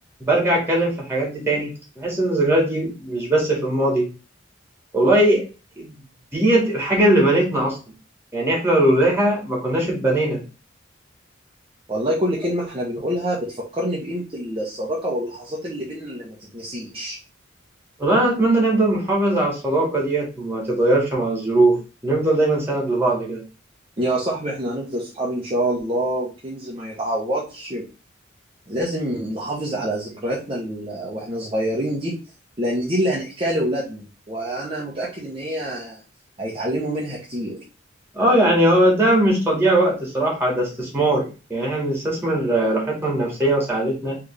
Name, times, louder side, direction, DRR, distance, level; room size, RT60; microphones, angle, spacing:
voice 1, 0.2-4.1 4.9-5.4 5.8-5.9 6.3-7.8 8.3-10.4 18.0-23.4 38.1-44.2, right 1 dB, 10° right, -2 dB, 2.1 m, -20 dB
voice 2, 11.9-17.2 24.0-27.9 28.7-32.2 32.6-36.0 36.4-37.6, right 1 dB, 30° right, -5 dB, 1.1 m, -26 dB
4.2 x 3.4 x 3.4 m, 0.32 s
head